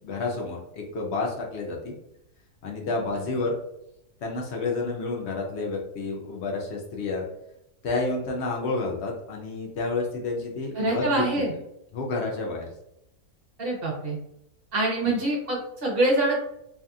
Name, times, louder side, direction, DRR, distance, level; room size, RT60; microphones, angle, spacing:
voice 1, 0.0-2.0 2.6-3.5 4.2-7.2 7.8-11.4 11.9-12.7, left 3 dB, 65° left, -1 dB, 0.6 m, -30 dB
voice 2, 10.7-11.5 13.6-14.2 14.7-16.4, right 2 dB, 50° right, -4 dB, 0.8 m, -25 dB
2.6 x 2.6 x 2.3 m, 0.82 s
omnidirectional pair, 1.6 m